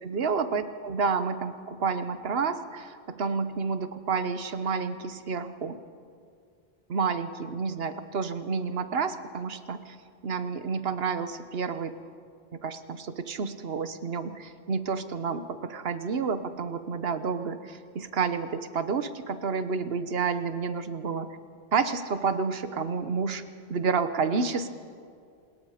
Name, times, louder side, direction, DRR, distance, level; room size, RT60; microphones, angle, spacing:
voice 1, 0.0-5.8 6.9-10.0 10.2-12.0 12.6-21.3 21.7-23.4 23.7-24.7, right 5 dB, 75° right, 11 dB, 1.2 m, -30 dB
27.0 x 20.5 x 5.0 m, 2.3 s
omnidirectional pair, 1.0 m